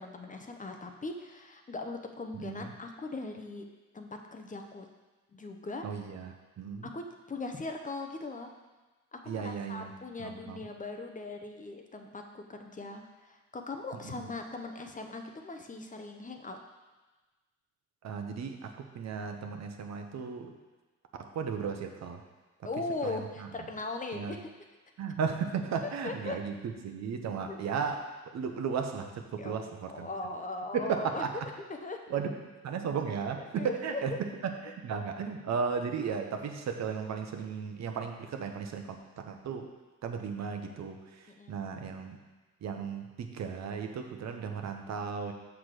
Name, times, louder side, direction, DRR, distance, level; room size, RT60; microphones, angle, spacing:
voice 1, 0.0-3.7 3.9-4.9 5.3-5.8 6.8-8.5 9.1-16.6 22.6-24.5 25.8-26.4 27.5-27.6 29.4-31.4 31.7-32.0 33.4-34.2 41.3-41.7, left 3 dB, 25° left, 4 dB, 0.8 m, -39 dB
voice 2, 2.3-2.7 5.8-6.9 9.3-9.9 10.2-10.6 14.0-14.2 18.0-20.5 21.2-22.2 23.0-23.2 24.1-24.3 25.0-26.5 26.8-28.0 28.3-30.1 30.7-31.3 32.1-32.3 32.6-34.2 34.6-39.7 40.0-42.2 42.6-45.3, right 6 dB, 60° right, 5 dB, 0.9 m, -35 dB
6.2 x 6.0 x 4.9 m, 1.2 s
cardioid pair, 90°, 30 cm